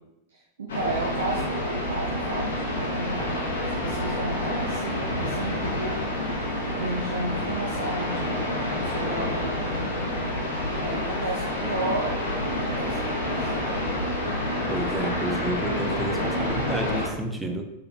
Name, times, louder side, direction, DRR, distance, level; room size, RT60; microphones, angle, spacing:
voice 1, 0.3-3.5 3.8-10.0 10.7-13.5, right 2 dB, 65° right, -2 dB, 0.5 m, -33 dB
sound 1, 0.7-17.1, left 1 dB, 65° left, 0.7 m, -28 dB
voice 2, 14.7-17.6, right 1 dB, 10° right, 4 dB, 0.4 m, -30 dB
3.3 x 3.2 x 2.3 m, 0.90 s
figure-of-eight pair, 90°, 0 cm